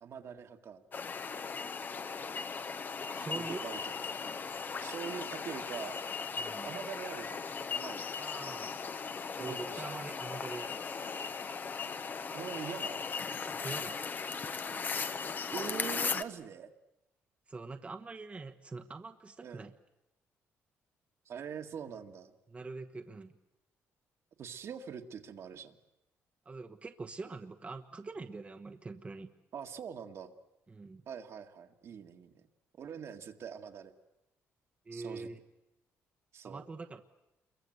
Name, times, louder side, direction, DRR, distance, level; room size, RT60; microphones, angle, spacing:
voice 1, 0.0-0.8 3.3-4.4 4.8-6.0 6.6-7.4 7.7-8.1 9.4-10.0 12.3-13.1 15.5-16.7 19.4-19.7 21.3-22.3 24.4-25.8 29.5-30.3 31.1-32.3 32.8-33.9 34.9-35.3 36.3-36.6, right 7 dB, 60° right, 5 dB, 1.9 m, -43 dB
sound 1, 0.9-16.2, left 5 dB, 35° left, 1.0 m, -38 dB
voice 2, 3.1-3.6 6.4-6.7 8.1-8.8 9.4-10.9 13.5-14.1 17.5-19.7 22.5-23.3 26.4-29.3 30.7-31.0 34.8-35.4 36.4-37.0, right 3 dB, 25° right, 5 dB, 1.1 m, -44 dB
27.5 x 23.0 x 8.0 m, 0.92 s
cardioid pair, 100°, 5 cm